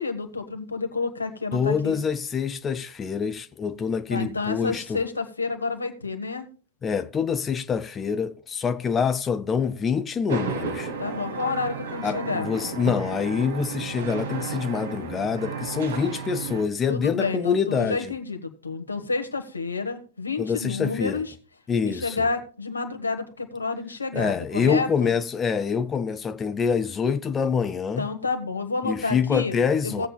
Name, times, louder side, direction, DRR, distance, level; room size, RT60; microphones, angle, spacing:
voice 1, 0.0-2.0 4.1-6.5 11.0-12.5 16.9-21.3 21.8-25.1 28.0-29.6 29.8-30.1, left 4 dB, 80° left, 1.4 m, -29 dB
voice 2, 1.5-5.0 6.8-10.9 12.0-18.1 20.4-21.2 21.7-22.2 24.1-28.0 28.8-30.1, left 6 dB, 20° left, 0.6 m, -26 dB
sound 1, 10.3-16.6, right 4 dB, 65° right, 1.5 m, -33 dB
18.0 x 8.0 x 2.3 m
figure-of-eight pair, 90°, 0 cm